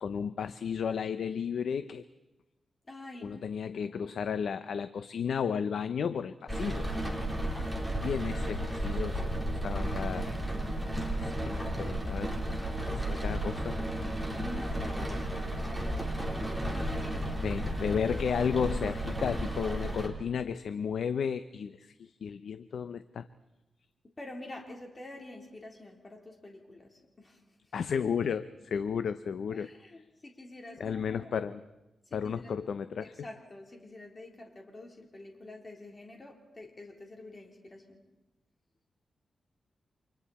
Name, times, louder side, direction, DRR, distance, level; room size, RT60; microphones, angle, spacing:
voice 1, 0.0-2.0 3.2-6.9 8.0-10.3 11.1-12.4 12.9-13.8 17.4-23.3 27.7-29.7 30.8-31.6 32.1-33.3, left 7 dB, 80° left, 12 dB, 0.7 m, -33 dB
voice 2, 2.8-3.5 3.9-4.2 7.5-8.0 14.4-18.0 24.0-27.7 29.5-31.3 32.1-32.5 33.0-38.0, left 1 dB, 30° left, 0 dB, 3.7 m, -48 dB
Rain, 6.5-20.1, right 1 dB, ahead, 4.0 m, -33 dB
29.5 x 26.0 x 4.3 m, 1.0 s
wide cardioid pair, 120°, 0 cm